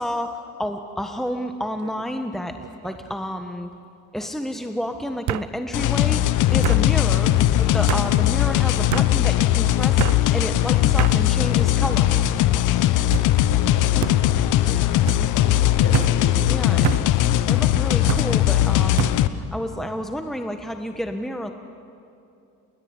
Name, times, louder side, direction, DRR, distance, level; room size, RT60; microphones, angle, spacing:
voice 1, 0.0-2.6 2.8-3.7 4.1-12.4 14.6-15.3 16.5-16.9 17.5-21.5, equal, ahead, 6 dB, 1.5 m, -30 dB
sound 1, 1.8-2.2 2.6-3.1 4.2-4.3 5.3-5.5 6.6-6.8 7.9-8.1 8.9-9.1 10.0-10.2 11.0-11.2 11.9-12.3 13.1-13.3 14.0-14.2 15.1-15.2 15.9-16.1 16.8-17.1 18.1-18.3 19.0-19.2, right 13 dB, 75° right, 0.9 m, -26 dB
sound 2, 5.7-19.3, left 13 dB, 90° left, 1.0 m, -19 dB
voice 2, 13.6-14.5 15.1-16.3 16.7-17.1, left 1 dB, 50° left, 1 dB, 7.8 m, -36 dB
28.5 x 21.5 x 9.8 m, 2.6 s
cardioid pair, 90°, 30 cm